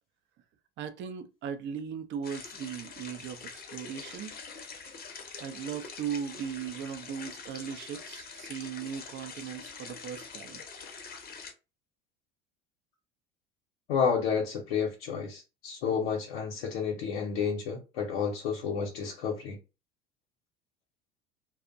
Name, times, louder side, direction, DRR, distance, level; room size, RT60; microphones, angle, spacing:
voice 1, 0.8-4.4 5.4-10.6, right 8 dB, 40° right, 0.5 m, -38 dB
sound 1, 2.2-11.5, left 5 dB, 30° left, 0.6 m, -45 dB
voice 2, 13.9-19.6, left 6 dB, 70° left, 0.7 m, -30 dB
2.4 x 2.0 x 2.5 m
hypercardioid pair, 70°, 31 cm